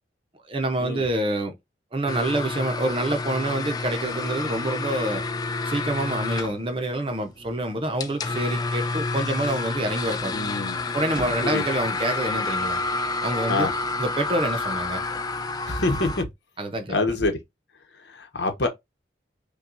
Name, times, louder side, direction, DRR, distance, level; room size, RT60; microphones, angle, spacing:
voice 1, 0.5-1.5 1.9-5.2 5.6-10.3 10.9-12.8 13.2-13.7 14.0-15.0 16.6-17.0, right 1 dB, 30° right, 0.7 m, -27 dB
sound 1, 2.1-16.2, left 3 dB, 20° left, 0.4 m, -29 dB
voice 2, 10.3-10.8 11.4-12.0 13.5-13.7 15.7-16.3 16.9-17.4 17.9-18.7, left 2 dB, 70° left, 1.0 m, -26 dB
5.7 x 2.3 x 2.5 m
head